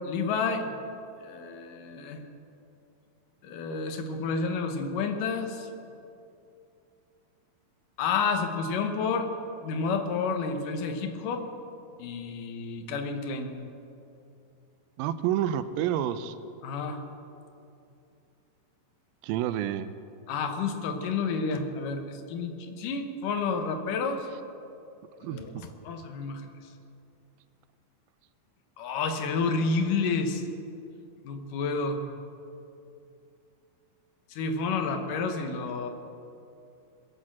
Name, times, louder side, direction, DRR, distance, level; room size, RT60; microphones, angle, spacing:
voice 1, 0.1-0.7 1.2-2.2 3.4-5.7 8.0-9.3 9.6-11.5 12.0-13.5 16.6-17.0 20.3-24.3 25.2-26.4 28.8-30.4 31.2-32.0 34.3-35.9, left 4 dB, 70° left, 6 dB, 2.6 m, -30 dB
voice 2, 15.0-16.4 19.2-19.9 25.2-25.6, right 11 dB, 85° right, 12 dB, 2.4 m, -29 dB
21.0 x 8.8 x 7.5 m, 2.7 s
omnidirectional pair, 4.1 m